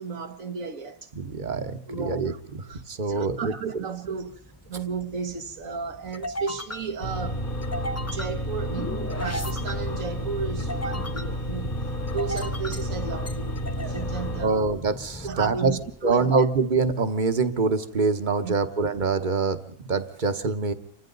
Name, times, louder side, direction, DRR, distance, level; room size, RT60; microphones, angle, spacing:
voice 1, 0.0-1.1 1.9-11.8 12.1-14.7 15.2-16.4 18.4-18.6, right 5 dB, 75° right, 1.7 m, -34 dB
voice 2, 1.2-1.8 2.0-2.3 2.9-3.5 14.4-20.7, right 4 dB, 35° right, 1.2 m, -25 dB
sound 1, 4.0-16.5, left 1 dB, 15° left, 0.6 m, -38 dB
sound 2, 7.0-14.5, equal, 40° left, 1.6 m, -31 dB
28.5 x 24.5 x 4.0 m
omnidirectional pair, 1.4 m